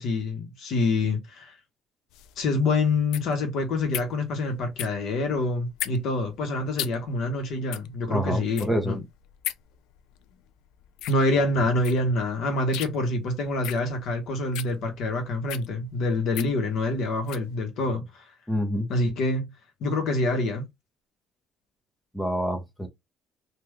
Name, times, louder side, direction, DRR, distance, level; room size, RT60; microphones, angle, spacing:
voice 1, 0.0-1.5 2.4-9.0 11.1-18.2 18.9-19.5 19.8-20.6, left 2 dB, 55° left, 0.9 m, -26 dB
sound 1, 2.1-17.5, left 13 dB, 90° left, 0.3 m, -39 dB
voice 2, 8.1-9.0 18.5-18.9 22.1-22.9, equal, 5° left, 0.7 m, -27 dB
3.5 x 2.3 x 3.1 m
cardioid pair, 180°, 0 cm